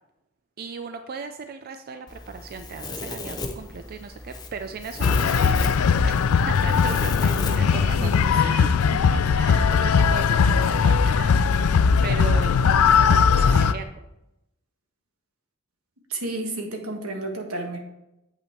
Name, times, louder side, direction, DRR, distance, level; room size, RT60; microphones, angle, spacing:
voice 1, 0.6-5.7 6.0-11.4 12.0-14.1, right 5 dB, 45° right, 8 dB, 0.4 m, -37 dB
Domestic sounds home sounds, 2.1-8.3, left 2 dB, 20° left, 0.7 m, -36 dB
sound 1, 5.0-13.7, left 6 dB, 85° left, 0.4 m, -19 dB
voice 2, 16.1-17.8, right 2 dB, 85° right, 3 dB, 1.5 m, -31 dB
8.1 x 5.9 x 4.4 m, 0.89 s
head